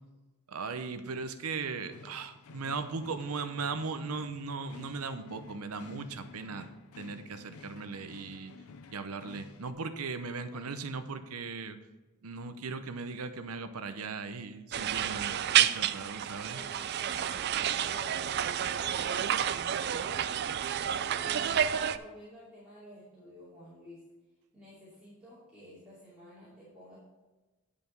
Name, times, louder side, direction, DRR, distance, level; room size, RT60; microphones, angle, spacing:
voice 1, 0.5-6.7 7.0-8.5 8.9-11.8 12.2-16.6, right 4 dB, 80° right, 10 dB, 0.7 m, -38 dB
sound 1, 1.9-9.7, left 4 dB, 80° left, 0.6 m, -52 dB
sound 2, 14.7-22.0, right 9 dB, 50° right, 0.3 m, -30 dB
voice 2, 15.0-15.4 16.5-24.0 24.5-27.0, equal, 5° right, -12 dB, 2.6 m, -51 dB
10.0 x 5.1 x 5.3 m, 1.2 s
head